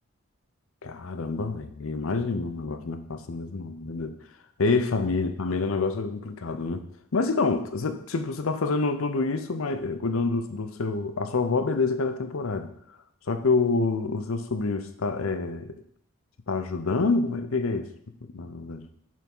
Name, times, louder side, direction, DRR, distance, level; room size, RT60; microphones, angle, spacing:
voice 1, 0.8-4.1 4.6-6.8 7.1-12.7 13.3-15.8 16.5-17.9 18.3-18.9, left 3 dB, 80° left, 9 dB, 0.7 m, -27 dB
7.5 x 3.7 x 5.4 m, 0.70 s
head